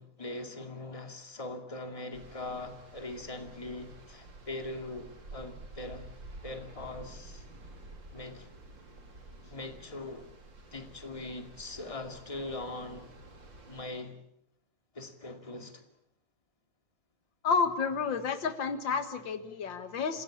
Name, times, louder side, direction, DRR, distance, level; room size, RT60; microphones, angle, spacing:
voice 1, 0.0-6.1 6.4-7.5 8.1-8.5 9.5-10.3 10.7-13.1 13.7-14.2 14.9-15.9, left 2 dB, 20° left, 5 dB, 2.4 m, -41 dB
sound 1, 2.1-13.9, right 2 dB, 85° right, 4.0 m, -50 dB
voice 2, 17.4-20.2, left 5 dB, 85° left, 9 dB, 2.3 m, -30 dB
28.5 x 16.5 x 8.7 m, 0.79 s
omnidirectional pair, 2.0 m